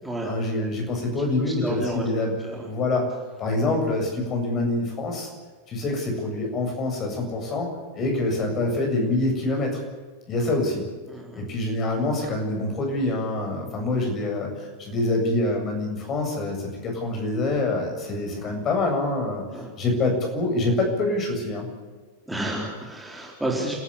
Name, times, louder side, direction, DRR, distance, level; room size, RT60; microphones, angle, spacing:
voice 1, 0.2-2.3 2.6-3.1 3.4-5.3 5.7-7.7 7.9-9.8 10.3-10.8 11.3-19.4 19.8-21.7, left 2 dB, 30° left, 2 dB, 7.5 m, -25 dB
voice 2, 1.6-2.0 2.4-2.7 11.1-11.4 19.5-19.7 22.3-23.7, right 1 dB, 5° right, -3 dB, 4.6 m, -30 dB
29.5 x 13.5 x 8.5 m, 1.4 s
figure-of-eight pair, 90°, 0 cm